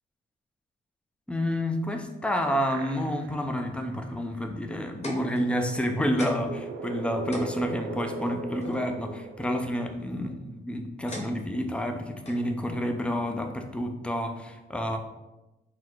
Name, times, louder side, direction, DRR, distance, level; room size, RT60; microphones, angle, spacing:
voice 1, 1.3-15.0, equal, 5° left, 5 dB, 0.5 m, -29 dB
sound 1, 2.0-3.5 4.0-4.1 5.4-10.1, right 4 dB, 75° right, 0.6 m, -39 dB
sound 2, 5.0-5.8 6.2-6.6 7.0-7.1 7.3-8.8 9.9-10.3 11.1-11.7 12.3-12.5 13.3-13.4, left 1 dB, 35° left, 0.9 m, -41 dB
3.9 x 2.1 x 4.5 m, 1.0 s
cardioid pair, 90°, 20 cm